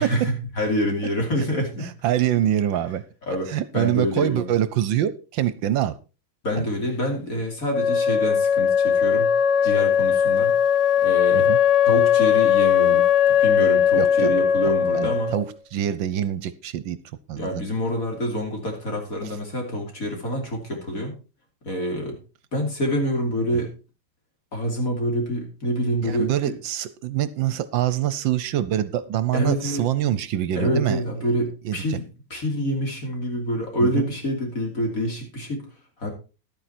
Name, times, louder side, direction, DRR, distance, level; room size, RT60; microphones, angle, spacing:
voice 1, 0.0-1.9 3.3-4.5 6.4-9.3 9.6-10.5 11.0-11.5 11.8-15.3 17.4-21.1 21.6-22.2 22.5-23.7 24.5-26.5 29.3-29.8 30.6-35.7 36.0-36.1, equal, 45° left, 1 dB, 3.4 m, -26 dB
voice 2, 1.8-3.0 3.3-5.9 6.6-6.7 11.3-11.6 14.0-14.3 14.6-17.0 17.3-17.6 19.2-19.3 26.0-31.3 31.6-32.0 33.8-34.1, right 11 dB, 75° right, 15 dB, 1.4 m, -25 dB
Wind instrument woodwind instrument, 7.7-15.4, left 8 dB, 70° left, 1.3 m, -19 dB
11.5 x 9.2 x 4.3 m, 0.33 s
omnidirectional pair, 2.2 m